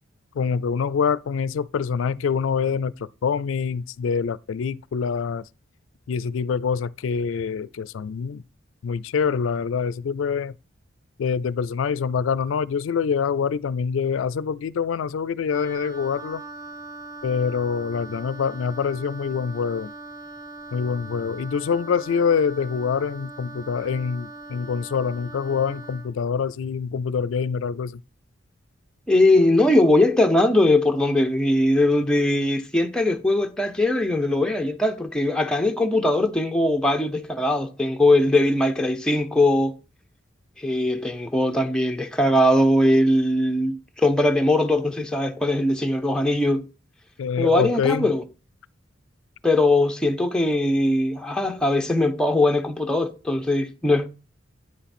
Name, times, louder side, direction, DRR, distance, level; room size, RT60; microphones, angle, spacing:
voice 1, 0.4-5.4 6.1-8.4 8.8-10.5 11.2-16.4 17.2-19.9 20.7-28.0 47.2-48.1, left 6 dB, 85° left, 0.4 m, -25 dB
Wind instrument woodwind instrument, 15.5-26.1, right 2 dB, 20° right, 1.1 m, -40 dB
voice 2, 29.1-39.8 40.6-46.7 47.4-48.2 49.4-54.1, left 1 dB, 5° left, 0.7 m, -20 dB
9.4 x 5.7 x 4.3 m
head